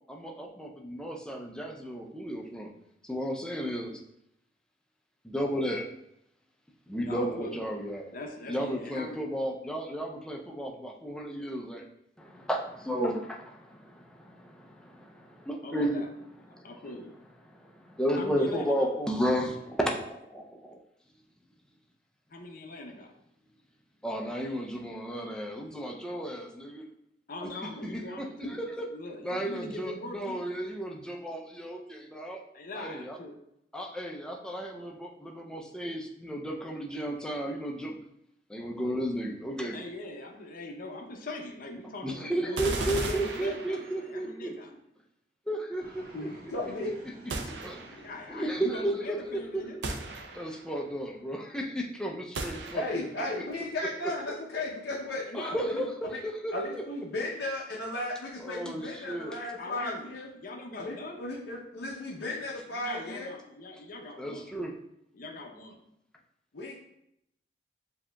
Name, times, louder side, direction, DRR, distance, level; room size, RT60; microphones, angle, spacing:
voice 1, 0.1-2.7 3.0-4.0 5.2-5.9 6.9-8.1 8.5-11.9 12.2-16.0 16.5-16.7 17.4-20.8 24.0-26.9 27.6-28.9 29.2-32.4 32.7-33.2 33.7-38.1 38.5-39.8 42.0-44.5 45.5-46.3 47.4-48.0 48.3-49.6 50.3-53.0 55.3-56.8 58.4-59.4 64.2-64.8, equal, 5° left, 0 dB, 0.4 m, -33 dB
voice 2, 7.0-7.6 8.1-9.2 15.6-16.0 16.5-17.1 18.2-18.7 22.3-23.1 27.3-30.5 32.5-33.4 39.7-44.7 48.0-49.8 55.3-55.7 59.6-60.1 60.3-61.2 62.7-64.5 65.1-65.8, left 1 dB, 50° left, 2 dB, 0.6 m, -41 dB
sound 1, 42.6-44.2 47.3-48.2 49.8-50.7 52.3-53.2, right 2 dB, 70° right, 0.5 m, -36 dB
Fixed-wing aircraft airplane, 45.8-51.2, right 1 dB, 55° right, 1.7 m, -54 dB
voice 3, 46.1-46.9 52.7-56.2 56.5-60.3 60.8-63.3 66.5-66.7, left 2 dB, 85° left, -5 dB, 0.7 m, -35 dB
7.2 x 2.8 x 2.2 m, 0.79 s
head